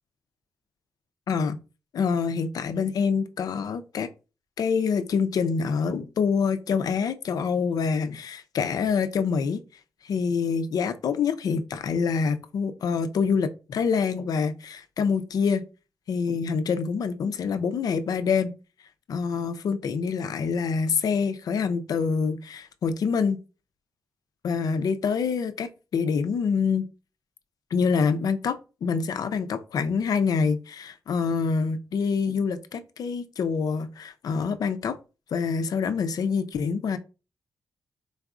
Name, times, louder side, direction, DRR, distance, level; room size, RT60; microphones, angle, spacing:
voice 1, 1.3-1.6 1.9-4.1 4.6-9.6 10.0-15.6 16.1-18.5 19.1-23.4 24.4-26.9 27.7-35.0 35.3-37.0, left 5 dB, 70° left, 0.5 m, -26 dB
3.9 x 3.5 x 2.4 m
supercardioid pair, 50°, 7 cm